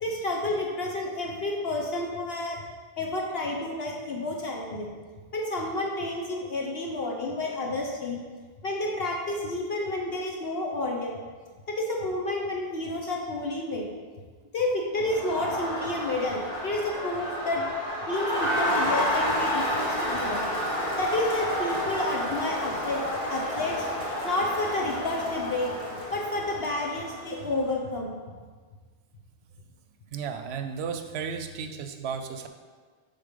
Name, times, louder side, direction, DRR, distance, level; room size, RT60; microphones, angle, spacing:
voice 1, 0.0-2.6 3.0-4.9 5.3-8.2 8.6-11.2 11.7-13.9 14.5-17.6 18.0-20.4 20.9-23.0 23.3-23.9 24.2-25.7 26.1-28.1, left 2 dB, 60° left, -1 dB, 1.0 m, -30 dB
Crowd, 15.0-27.5, equal, 35° left, 1.5 m, -30 dB
voice 2, 30.1-32.5, right 6 dB, 70° right, 7 dB, 0.8 m, -34 dB
6.2 x 4.0 x 5.1 m, 1.5 s
omnidirectional pair, 1.2 m